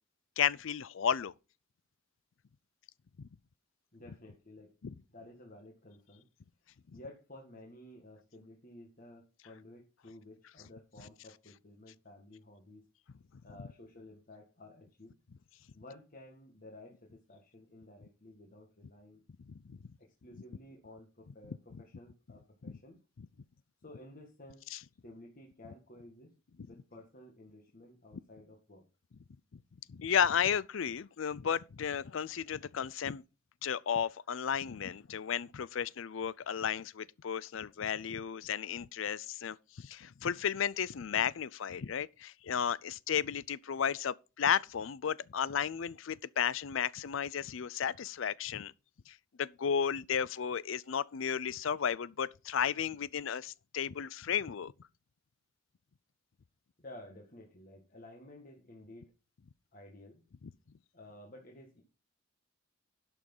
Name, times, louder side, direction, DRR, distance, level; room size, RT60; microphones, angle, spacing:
voice 1, 0.4-1.3 3.2-3.3 4.8-4.9 19.5-19.8 22.6-22.7 23.2-23.3 24.7-24.8 29.9-33.2 33.6-48.7 49.1-54.7, left 8 dB, 65° left, 0.5 m, -33 dB
voice 2, 3.9-4.7 5.1-6.3 6.9-12.9 13.4-15.2 15.7-19.2 20.0-23.0 23.8-24.6 25.0-26.3 26.7-28.8 56.8-59.1 59.7-60.2 60.9-61.8, left 1 dB, 45° left, 1.9 m, -53 dB
11.5 x 6.2 x 5.4 m
head